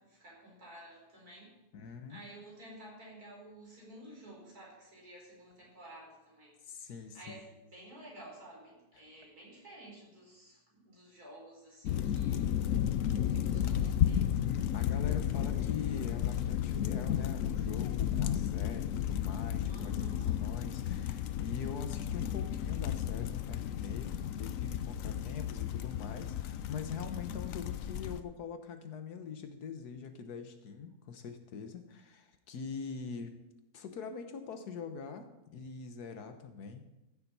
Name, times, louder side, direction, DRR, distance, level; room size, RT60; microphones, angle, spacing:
voice 1, 0.0-1.6 2.1-13.0 13.3-14.4 19.7-20.5, right 1 dB, 75° right, -2 dB, 4.6 m, -52 dB
voice 2, 1.7-2.2 6.6-7.4 14.5-20.1 20.4-33.4 33.7-36.9, left 5 dB, 90° left, 8 dB, 1.6 m, -44 dB
sound 1, 11.9-28.2, left 10 dB, 70° left, 1.0 m, -33 dB
14.0 x 7.3 x 5.5 m, 0.99 s
omnidirectional pair, 1.6 m